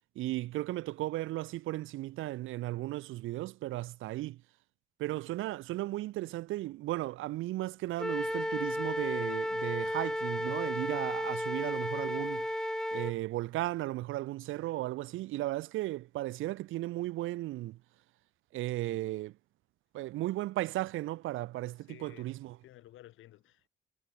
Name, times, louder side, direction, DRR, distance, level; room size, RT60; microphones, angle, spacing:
voice 1, 0.1-4.4 5.0-12.5 12.9-17.8 18.5-19.3 19.9-22.6, right 16 dB, 90° right, 1.0 m, -35 dB
Wind instrument woodwind instrument, 8.0-13.1, left 1 dB, 5° left, 0.6 m, -33 dB
voice 2, 18.8-19.2 21.9-22.3 22.6-23.7, left 14 dB, 85° left, 2.7 m, -54 dB
cardioid pair, 90°, 20 cm